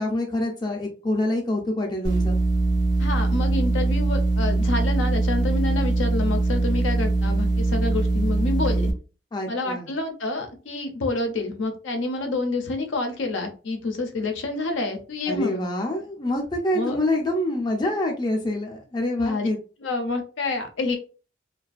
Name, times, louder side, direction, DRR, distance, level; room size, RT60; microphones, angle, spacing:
voice 1, 0.0-2.4 9.3-9.9 15.3-19.6, left 1 dB, 20° left, 1 dB, 0.4 m, -26 dB
sound 1, 2.0-8.9, right 2 dB, 70° right, 0.5 m, -22 dB
voice 2, 3.0-8.9 9.5-15.7 16.7-17.0 19.2-19.5 19.8-21.0, left 2 dB, 75° left, 5 dB, 0.5 m, -28 dB
2.4 x 2.2 x 2.4 m, 0.36 s
head